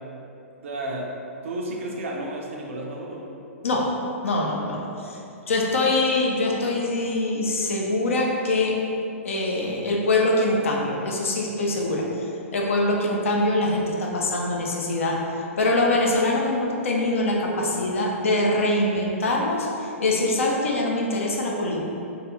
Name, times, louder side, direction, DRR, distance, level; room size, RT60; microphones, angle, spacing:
voice 1, 0.6-1.1 1.4-3.3, right 1 dB, 65° right, -1 dB, 0.4 m, -32 dB
voice 2, 3.6-4.0 4.2-5.2 5.5-8.8 9.2-15.3 15.6-21.8, left 2 dB, 70° left, -1 dB, 0.5 m, -24 dB
2.3 x 2.3 x 2.9 m, 2.7 s
figure-of-eight pair, 110°, 8 cm